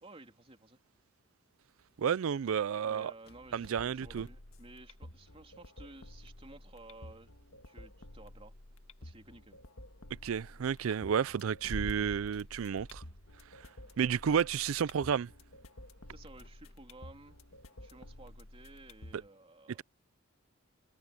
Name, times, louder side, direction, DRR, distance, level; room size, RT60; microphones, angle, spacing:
voice 1, 0.0-0.8 2.8-7.3 7.6-8.5 9.0-9.6 16.1-17.4 17.8-19.8, right 2 dB, 30° right, 3.2 m, -54 dB
sound 1, 1.8-18.5, equal, 50° left, 2.5 m, -53 dB
voice 2, 2.0-3.1 3.5-4.3 10.2-13.0 14.0-15.3, right 7 dB, 80° right, 0.4 m, -31 dB
sound 2, 3.3-19.3, left 1 dB, 85° left, 1.8 m, -52 dB
head